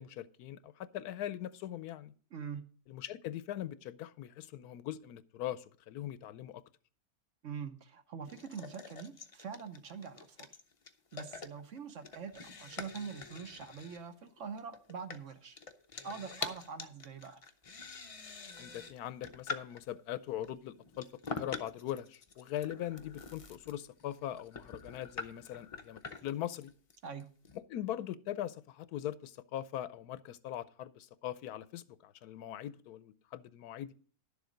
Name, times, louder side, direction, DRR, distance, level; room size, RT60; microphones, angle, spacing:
voice 1, 0.0-2.1 2.9-6.6 18.6-26.7 27.5-33.9, left 12 dB, 90° left, 16 dB, 1.2 m, -41 dB
voice 2, 2.3-2.6 7.4-10.5 11.1-15.6 16.0-17.4 27.0-27.3, right 6 dB, 60° right, 9 dB, 1.2 m, -44 dB
sound 1, 8.3-19.9 20.4-27.6, left 4 dB, 45° left, 0.4 m, -45 dB
11.0 x 7.1 x 5.1 m, 0.43 s
omnidirectional pair, 1.6 m